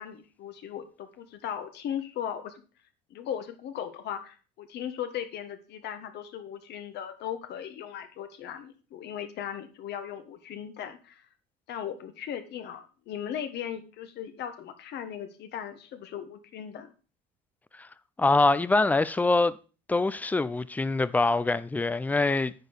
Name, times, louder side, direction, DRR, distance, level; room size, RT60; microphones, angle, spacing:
voice 1, 0.0-2.5 3.1-11.3 11.7-16.9, left 9 dB, 55° left, 1.3 m, -37 dB
voice 2, 18.2-19.6 19.9-22.5, left 3 dB, 10° left, 0.4 m, -24 dB
9.3 x 4.5 x 5.0 m
cardioid pair, 120°, 21 cm